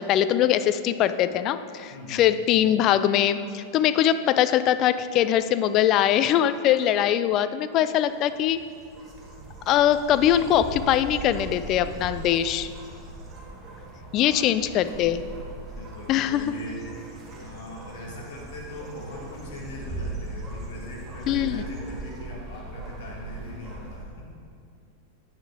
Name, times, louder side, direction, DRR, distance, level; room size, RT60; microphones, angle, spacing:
voice 1, 0.0-8.6 9.7-12.7 14.1-15.2 16.1-16.5 21.3-21.6, left 11 dB, 35° left, 12 dB, 0.4 m, -22 dB
voice 2, 1.9-2.3 14.1-14.5 15.6-16.9 17.4-24.3, left 2 dB, 55° left, -3 dB, 1.9 m, -41 dB
sound 1, 7.8-24.0, right 3 dB, 20° right, 1.8 m, -39 dB
10.0 x 8.9 x 3.7 m, 2.2 s
figure-of-eight pair, 90°, 0 cm